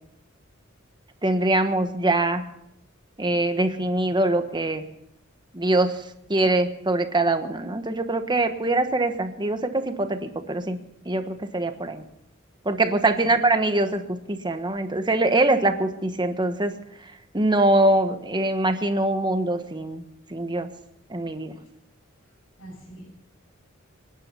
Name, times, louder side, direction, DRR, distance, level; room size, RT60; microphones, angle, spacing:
voice 1, 1.2-2.4 3.2-4.9 5.5-6.0 6.3-12.0 12.6-16.8 17.3-20.0 20.3-20.7 21.1-21.6, right 2 dB, 20° right, 8 dB, 1.3 m, -23 dB
voice 2, 22.2-23.0, right 1 dB, 75° left, -6 dB, 7.6 m, -45 dB
24.5 x 10.5 x 5.6 m, 0.80 s
head